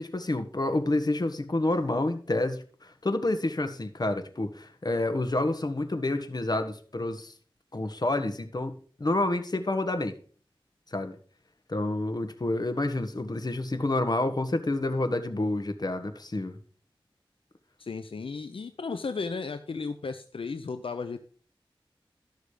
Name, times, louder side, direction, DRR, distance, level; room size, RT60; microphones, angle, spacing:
voice 1, 0.0-2.6 3.0-7.3 7.7-8.7 9.0-10.1 10.9-11.2 11.7-16.6, left 2 dB, 45° left, 8 dB, 1.5 m, -28 dB
voice 2, 17.8-21.2, left 4 dB, 80° left, 9 dB, 0.6 m, -34 dB
13.0 x 6.5 x 5.0 m, 0.43 s
wide cardioid pair, 60°, 9 cm